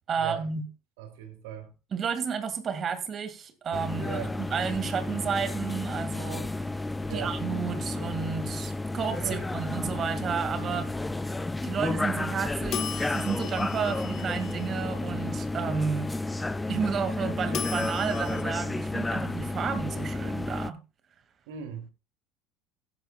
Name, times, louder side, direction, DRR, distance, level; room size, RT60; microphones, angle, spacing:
voice 1, 0.1-0.7 1.9-6.8 7.1-10.9 11.6-16.1 16.7-20.8, right 6 dB, 40° right, 2.4 m, -32 dB
voice 2, 1.0-1.7 4.0-4.4 7.0-7.4 9.2-9.4 21.5-21.9, right 8 dB, 80° right, 3.2 m, -38 dB
sound 1, 3.7-20.7, left 2 dB, 15° left, 0.6 m, -32 dB
sound 2, 12.7-14.9 17.5-18.4, left 10 dB, 55° left, 1.4 m, -37 dB
16.0 x 10.5 x 2.5 m
hypercardioid pair, 80°, 0 cm